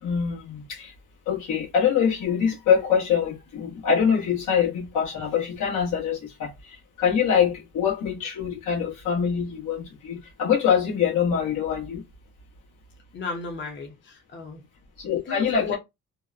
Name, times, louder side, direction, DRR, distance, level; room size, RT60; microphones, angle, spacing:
voice 1, 0.0-0.9 1.3-12.0 15.0-15.8, left 7 dB, 85° left, 1.1 m, -24 dB
voice 2, 13.1-14.6 15.2-15.8, left 3 dB, 40° left, 0.7 m, -35 dB
2.7 x 2.1 x 2.4 m
cardioid pair, 90°, 30 cm